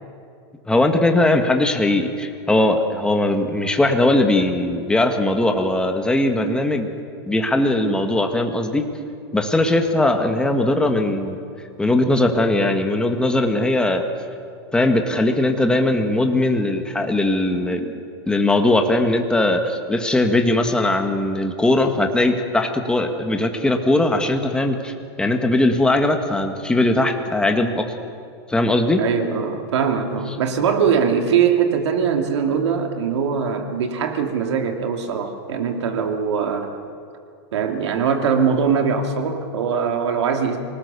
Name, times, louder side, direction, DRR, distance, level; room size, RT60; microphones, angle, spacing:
voice 1, 0.7-6.9 7.3-8.8 9.3-11.4 11.8-14.0 14.7-17.9 18.3-27.9 28.5-29.0, left 2 dB, 5° left, 5 dB, 1.8 m, -19 dB
voice 2, 29.0-36.7 37.5-40.6, right 6 dB, 85° right, 4 dB, 2.7 m, -21 dB
26.0 x 19.0 x 7.0 m, 2.4 s
supercardioid pair, 140°, 14 cm